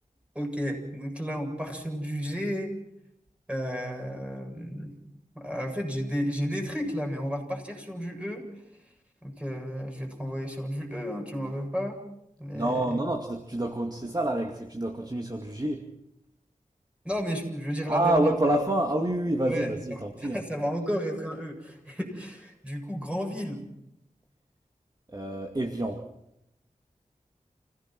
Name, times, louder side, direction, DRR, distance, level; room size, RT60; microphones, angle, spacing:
voice 1, 0.3-2.7 3.5-5.0 5.3-8.5 9.2-12.0 12.4-13.0 17.0-18.3 19.5-23.7, equal, 10° right, 2 dB, 7.7 m, -32 dB
voice 2, 12.5-15.9 17.9-20.4 25.1-26.1, right 1 dB, 30° right, 3 dB, 2.4 m, -27 dB
29.0 x 17.0 x 6.1 m, 0.81 s
cardioid pair, 45°, 14 cm